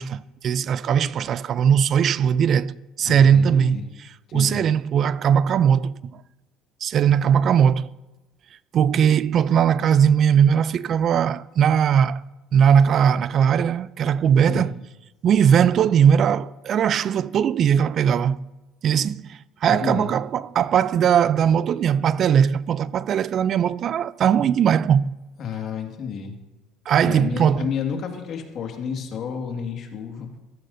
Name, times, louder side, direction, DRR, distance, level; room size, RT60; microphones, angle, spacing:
voice 1, 0.0-6.2 6.8-7.9 8.7-12.2 12.5-14.8 15.2-18.4 18.8-25.1 26.9-27.7, right 8 dB, 50° right, 0.3 m, -19 dB
voice 2, 3.0-3.8 4.3-4.6 14.5-14.7 19.7-20.1 25.4-26.4 27.0-30.3, left 6 dB, 50° left, 1.9 m, -30 dB
14.5 x 13.5 x 2.7 m
supercardioid pair, 95°, 0 cm